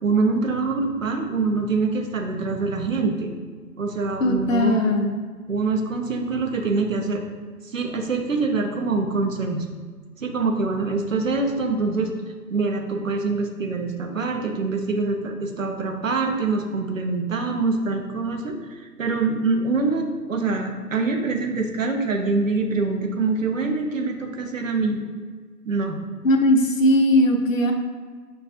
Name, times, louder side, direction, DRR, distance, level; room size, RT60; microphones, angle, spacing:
voice 1, 0.0-3.3 3.8-5.0 5.5-7.2 7.6-9.7 10.2-12.1 12.5-25.0 25.6-26.0, right 3 dB, 55° right, 3 dB, 0.5 m, -24 dB
voice 2, 4.2-5.1 26.2-27.7, left 1 dB, 55° left, 3 dB, 0.5 m, -19 dB
5.1 x 2.3 x 2.6 m, 1.5 s
figure-of-eight pair, 155°, 48 cm